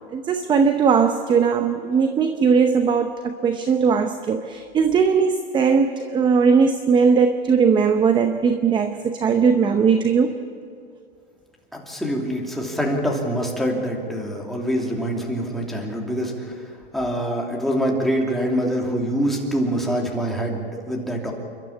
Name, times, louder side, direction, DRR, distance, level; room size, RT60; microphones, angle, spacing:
voice 1, 0.1-10.3, right 6 dB, 15° right, 8 dB, 0.7 m, -19 dB
voice 2, 11.7-16.3 16.9-21.3, equal, ahead, -2 dB, 2.9 m, -25 dB
28.5 x 12.5 x 8.6 m, 2.2 s
hypercardioid pair, 140°, 30 cm